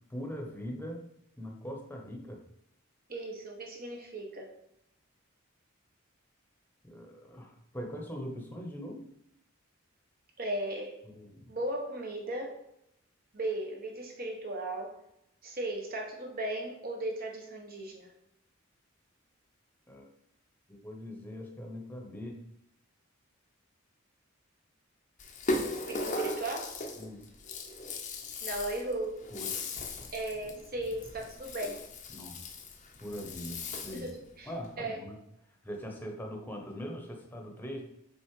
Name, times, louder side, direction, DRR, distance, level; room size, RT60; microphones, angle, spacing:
voice 1, 0.1-1.0 1.4-2.4 6.8-9.1 11.0-11.4 19.9-20.0 20.7-22.4 27.0-27.3 29.3-29.8 32.1-32.6 33.0-34.1 34.5-35.2 35.5-37.8, equal, 10° left, 2 dB, 1.1 m, -41 dB
voice 2, 3.1-4.5 10.4-11.0 11.5-12.6 13.3-14.9 15.4-18.1 25.8-26.8 28.4-29.3 30.1-31.8 33.9-34.5 34.8-35.0, right 1 dB, 45° right, 1 dB, 1.4 m, -36 dB
Rattle (instrument), 25.2-34.2, left 2 dB, 35° left, 0.8 m, -38 dB
6.1 x 4.2 x 4.9 m, 0.78 s
head